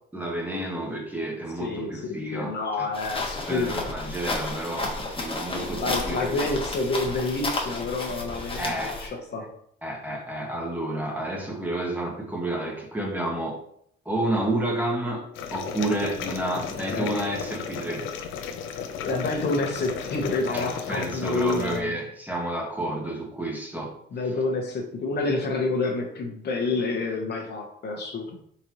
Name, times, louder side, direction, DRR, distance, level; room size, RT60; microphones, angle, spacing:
voice 1, 0.1-2.9 3.5-6.4 8.6-9.1 9.8-13.6 14.0-18.1 20.5-24.0, right 1 dB, 10° right, 0 dB, 1.2 m, -30 dB
voice 2, 1.6-3.9 5.8-9.5 16.5-16.6 16.9-17.1 19.0-22.0 22.8-23.0 24.1-28.4, left 3 dB, 55° left, 2 dB, 1.0 m, -28 dB
sound 1, 2.9-9.1, left 2 dB, 25° left, 1.2 m, -32 dB
sound 2, 15.3-21.8, left 7 dB, 85° left, 0.6 m, -34 dB
4.3 x 4.0 x 3.0 m, 0.67 s
cardioid pair, 90°, 20 cm